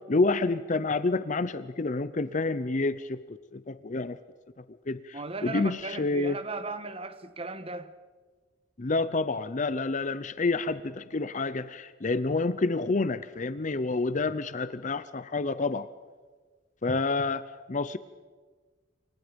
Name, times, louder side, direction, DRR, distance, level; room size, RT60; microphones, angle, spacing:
voice 1, 0.0-3.2 3.5-4.2 4.9-6.4 8.8-15.9 16.8-18.0, left 3 dB, 40° left, 0.6 m, -28 dB
voice 2, 5.1-7.9, right 3 dB, 30° right, 1.5 m, -37 dB
28.0 x 25.0 x 5.2 m
head